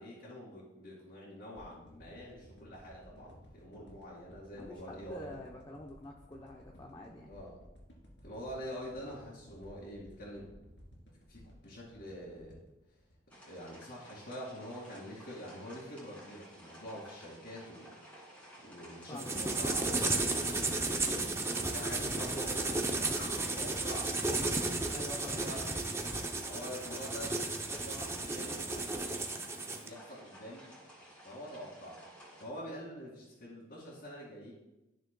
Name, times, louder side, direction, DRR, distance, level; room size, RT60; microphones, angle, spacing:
voice 1, 0.0-5.4 7.3-7.6 8.2-10.5 11.3-12.6 13.5-17.9 18.6-24.2 25.2-25.6 26.1-27.4 27.8-29.3 29.8-30.7 31.2-32.0 32.4-34.5, equal, 55° left, -8 dB, 2.3 m, -46 dB
sound 1, 1.6-13.9 14.3-14.4, equal, 85° left, 2.6 m, -57 dB
voice 2, 4.5-7.3 19.1-19.3 24.9-25.4, left 1 dB, 25° left, -1 dB, 0.7 m, -46 dB
sound 2, 13.3-32.4, equal, 10° left, 2.3 m, -54 dB
sound 3, 19.2-29.9, right 2 dB, 15° right, 0.6 m, -34 dB
12.0 x 6.4 x 2.2 m, 0.96 s
head